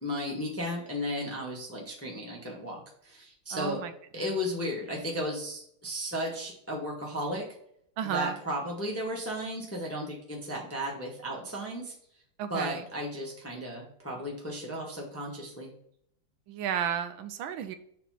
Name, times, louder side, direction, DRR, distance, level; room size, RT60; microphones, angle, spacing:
voice 1, 0.0-3.8 4.1-7.4 8.0-11.9 12.5-15.7, equal, 10° left, -2 dB, 0.9 m, -34 dB
voice 2, 3.5-4.3 8.0-8.4 12.4-12.8 16.5-17.7, right 9 dB, 75° right, 9 dB, 1.3 m, -33 dB
6.9 x 3.3 x 5.7 m, 0.69 s
omnidirectional pair, 2.4 m